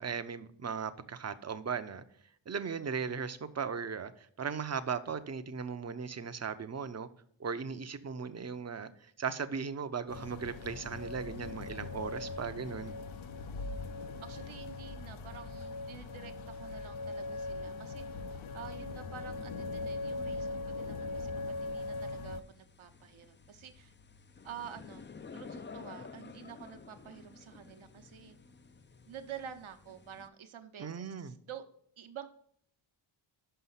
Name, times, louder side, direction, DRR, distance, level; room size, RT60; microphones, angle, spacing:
voice 1, 0.0-2.0 2.5-7.1 7.4-12.9 30.8-31.3, right 6 dB, 30° right, 0.6 m, -37 dB
sound 1, 10.1-22.4, left 3 dB, 65° left, 0.7 m, -40 dB
voice 2, 13.4-13.8 14.2-18.2 18.5-23.9 24.4-25.0 25.3-28.4 29.1-31.6 32.0-32.3, right 8 dB, 70° right, 1.0 m, -49 dB
sound 2, 21.5-30.3, left 5 dB, 25° left, 0.4 m, -52 dB
5.6 x 5.6 x 5.6 m
cardioid pair, 75°, 50 cm